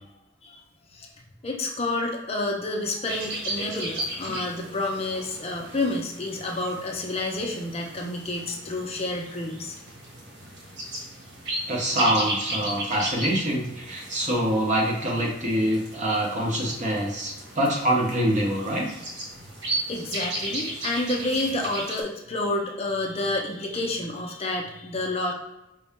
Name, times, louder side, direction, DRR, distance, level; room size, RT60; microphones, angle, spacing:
voice 1, 1.4-9.8 19.9-25.3, left 2 dB, 30° left, 0 dB, 0.7 m, -29 dB
sound 1, 3.1-22.0, right 1 dB, 65° right, 1.3 m, -35 dB
voice 2, 11.7-18.9, right 1 dB, 40° right, -2 dB, 1.1 m, -25 dB
5.1 x 2.7 x 3.6 m, 0.95 s
head